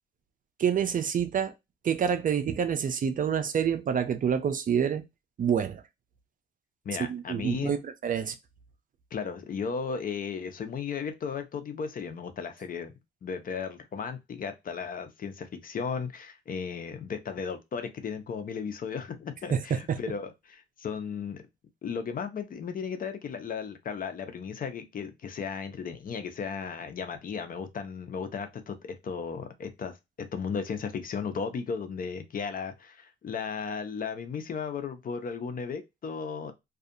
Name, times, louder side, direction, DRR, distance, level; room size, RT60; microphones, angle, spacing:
voice 1, 0.6-1.5 1.8-5.0 5.4-5.8 7.1-7.8 8.0-8.3 19.5-20.0, right 8 dB, 45° right, 0.5 m, -27 dB
voice 2, 6.8-7.7 9.1-12.9 13.2-21.4 21.8-36.5, left 6 dB, 45° left, 0.6 m, -35 dB
2.6 x 2.4 x 2.4 m
cardioid pair, 90°, 20 cm